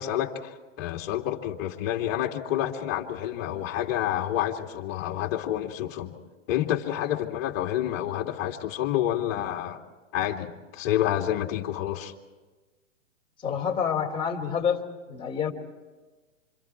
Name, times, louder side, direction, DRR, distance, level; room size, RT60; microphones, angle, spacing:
voice 1, 0.0-6.1 6.5-9.8 10.1-12.1, left 12 dB, 35° left, 2.6 m, -29 dB
voice 2, 13.4-14.8 15.1-15.5, left 7 dB, 15° left, 3.1 m, -27 dB
27.0 x 27.0 x 4.6 m
hypercardioid pair, 135°, 39 cm